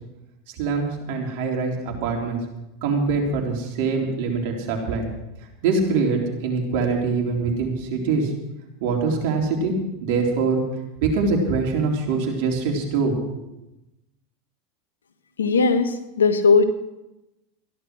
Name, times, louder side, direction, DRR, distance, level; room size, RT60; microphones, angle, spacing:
voice 1, 0.6-2.4 2.8-5.1 5.6-8.3 8.8-9.7 10.0-10.6 11.0-13.1, right 4 dB, 65° right, 1 dB, 3.8 m, -23 dB
voice 2, 15.4-16.6, left 4 dB, 90° left, 10 dB, 1.3 m, -18 dB
15.0 x 11.5 x 6.2 m, 0.96 s
hypercardioid pair, 95°, 0 cm